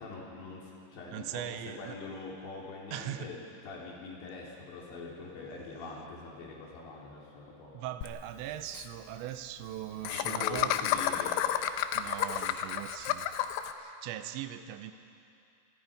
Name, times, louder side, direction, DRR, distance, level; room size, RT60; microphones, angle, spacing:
voice 1, 0.0-3.4 3.6-7.7 10.1-11.4, left 3 dB, 60° left, -3 dB, 5.6 m, -43 dB
voice 2, 1.1-2.0 2.9-3.3 7.7-11.0 11.9-13.3 13.8-14.9, right 11 dB, 80° right, 9 dB, 2.7 m, -40 dB
Laughter, 8.0-8.1 8.4-8.5 8.7-8.9 10.1-13.7, left 12 dB, 80° left, 3.0 m, -30 dB
29.5 x 22.0 x 5.1 m, 2.6 s
omnidirectional pair, 6.0 m